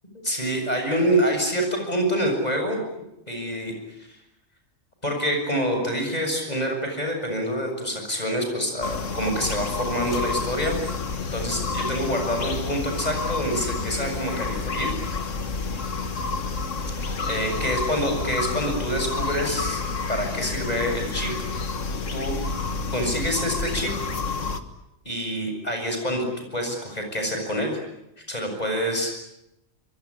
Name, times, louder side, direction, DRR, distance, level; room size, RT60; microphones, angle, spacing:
voice 1, 0.2-2.8 3.3-3.7 5.0-10.8 11.3-15.0 17.3-19.8 20.1-21.3 22.1-22.4 22.9-23.9 25.0-26.2 26.5-27.8 28.3-29.2, equal, 30° left, 3 dB, 7.5 m, -26 dB
sound 1, 8.8-24.6, left 4 dB, 70° left, 2.0 m, -29 dB
25.5 x 22.5 x 9.9 m, 0.88 s
omnidirectional pair, 1.3 m